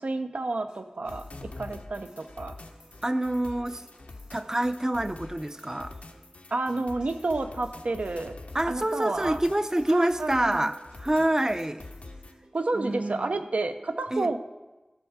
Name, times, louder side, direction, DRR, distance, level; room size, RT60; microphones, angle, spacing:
voice 1, 0.0-2.6 6.5-8.4 8.7-9.4 9.9-10.7 12.5-14.4, right 2 dB, 85° right, 8 dB, 0.6 m, -30 dB
sound 1, 0.7-13.2, right 1 dB, 45° right, 1.1 m, -55 dB
sound 2, 1.0-12.3, left 2 dB, 80° left, 0.7 m, -46 dB
voice 2, 3.0-3.8 4.3-5.9 8.5-11.9 12.7-13.4 14.1-14.3, right 1 dB, 25° right, 11 dB, 0.5 m, -27 dB
12.5 x 6.4 x 4.7 m, 1.1 s
wide cardioid pair, 45°, 2 cm